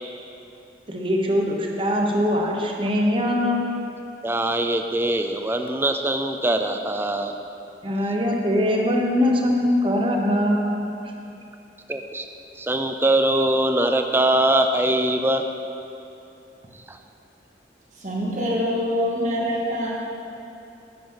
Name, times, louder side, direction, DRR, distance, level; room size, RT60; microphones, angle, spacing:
voice 1, 0.9-3.6 7.8-10.9, left 1 dB, 30° right, 0 dB, 1.0 m, -22 dB
voice 2, 4.2-7.3 11.9-12.3 12.6-15.4 16.9-17.0, right 1 dB, 15° right, 5 dB, 0.5 m, -22 dB
voice 3, 18.0-19.9, equal, 45° right, -4 dB, 1.8 m, -25 dB
11.0 x 10.0 x 3.9 m, 2.8 s
head